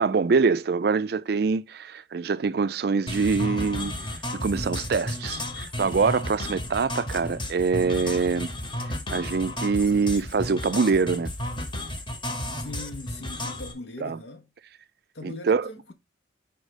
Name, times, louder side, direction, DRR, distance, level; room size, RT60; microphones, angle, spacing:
voice 1, 0.0-3.9 4.3-8.5 9.1-11.3 14.0-14.2 15.2-15.7, right 5 dB, 55° right, 0.4 m, -24 dB
sound 1, 3.1-13.7, left 1 dB, 25° left, 1.0 m, -33 dB
voice 2, 12.6-14.4 15.1-15.9, left 2 dB, 60° left, 0.7 m, -40 dB
5.2 x 4.4 x 4.9 m
head